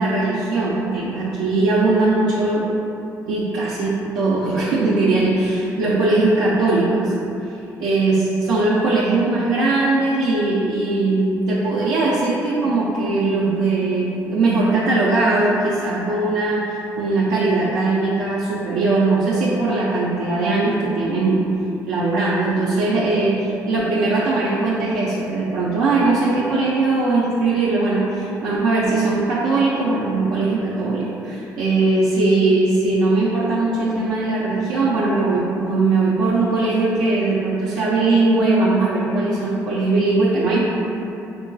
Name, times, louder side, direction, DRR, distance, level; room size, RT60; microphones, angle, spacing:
voice 1, 0.0-2.7 3.3-7.1 7.8-21.4 21.9-40.6, right 3 dB, 90° right, -7 dB, 0.4 m, -20 dB
3.7 x 2.4 x 2.3 m, 2.8 s
supercardioid pair, 70°, 7 cm